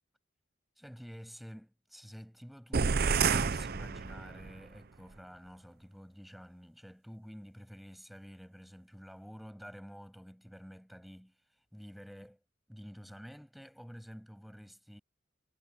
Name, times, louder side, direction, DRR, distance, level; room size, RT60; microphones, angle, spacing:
voice 1, 0.8-11.4 11.7-12.4 12.7-15.0, equal, ahead, 7.8 m, -50 dB
sound 1, 2.7-4.6, right 5 dB, 50° right, 0.6 m, -29 dB
head